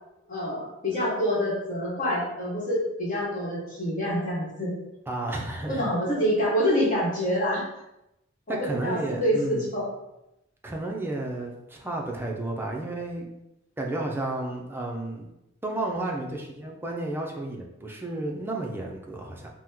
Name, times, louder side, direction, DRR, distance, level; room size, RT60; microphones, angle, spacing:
voice 1, 0.3-4.7 5.7-7.6 8.5-9.8, equal, 45° left, -6 dB, 1.1 m, -26 dB
voice 2, 5.1-5.9 8.5-9.7 10.6-13.3 13.8-15.3 15.6-19.5, right 2 dB, 10° right, 0 dB, 0.4 m, -32 dB
2.9 x 2.1 x 3.6 m, 0.88 s
head